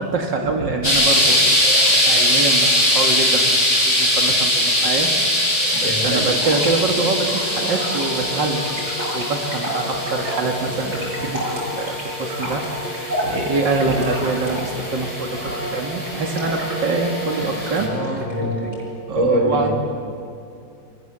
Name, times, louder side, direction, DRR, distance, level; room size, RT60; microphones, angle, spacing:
voice 1, 0.0-1.6 1.9-3.6 3.8-5.1 5.7-18.5 19.1-19.7, right 3 dB, 80° right, 2 dB, 2.7 m, -25 dB
sound 1, 0.8-17.8, left 1 dB, 50° left, 6.9 m, -22 dB
sound 2, 1.1-18.8, equal, 35° right, 7.9 m, -31 dB
voice 2, 5.8-6.3 17.8-18.7 19.1-19.7, equal, 15° right, 0 dB, 5.3 m, -23 dB
29.0 x 24.0 x 7.6 m, 2.5 s
omnidirectional pair, 1.9 m